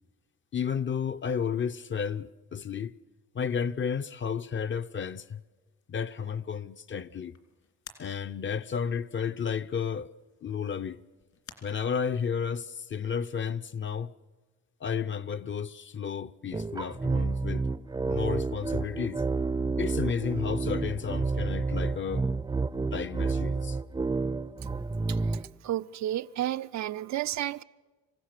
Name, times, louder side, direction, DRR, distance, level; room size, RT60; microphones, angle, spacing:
voice 1, 0.5-2.9 3.3-5.4 5.9-7.3 8.0-10.1 10.4-11.0 11.6-14.1 14.8-17.7 18.0-19.2 19.8-22.3 22.9-23.8, left 7 dB, 40° left, 0.7 m, -32 dB
sound 1, 5.2-12.4, left 7 dB, 65° left, 3.0 m, -56 dB
sound 2, 16.5-25.5, right 3 dB, 15° right, 0.5 m, -30 dB
voice 2, 25.6-27.6, right 12 dB, 65° right, 0.5 m, -31 dB
26.0 x 16.0 x 6.6 m
cardioid pair, 90°, 30 cm